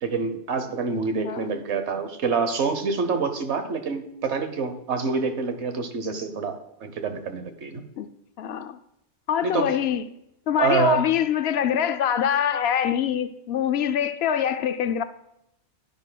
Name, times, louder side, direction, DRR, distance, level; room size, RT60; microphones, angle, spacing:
voice 1, 0.0-7.8 9.4-9.8 10.6-11.1, right 5 dB, 70° right, 1.2 m, -26 dB
voice 2, 8.4-8.8 9.3-10.0 10.5-15.0, left 9 dB, 65° left, 0.8 m, -24 dB
11.5 x 10.5 x 2.2 m
omnidirectional pair, 1.2 m